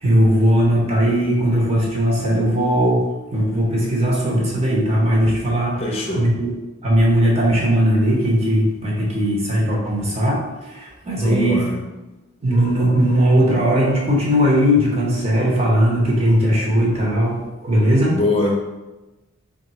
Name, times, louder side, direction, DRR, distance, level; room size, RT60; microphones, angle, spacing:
voice 1, 0.0-3.0 3.3-5.8 6.1-6.5 6.8-10.4 10.7-11.6 12.4-17.3 17.6-18.2, equal, 30° right, -4 dB, 0.9 m, -18 dB
voice 2, 5.8-6.3 11.2-11.8 18.1-18.8, left 2 dB, 30° left, 0 dB, 0.6 m, -23 dB
3.4 x 2.4 x 4.1 m, 1.1 s
head